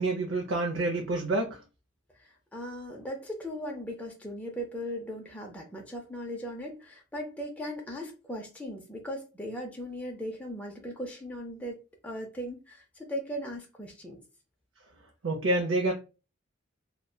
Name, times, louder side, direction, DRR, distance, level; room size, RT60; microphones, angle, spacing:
voice 1, 0.0-1.6 15.2-15.9, right 2 dB, 70° right, 0.5 m, -28 dB
voice 2, 2.2-14.2, equal, 10° left, 0.4 m, -38 dB
2.7 x 2.1 x 2.2 m
head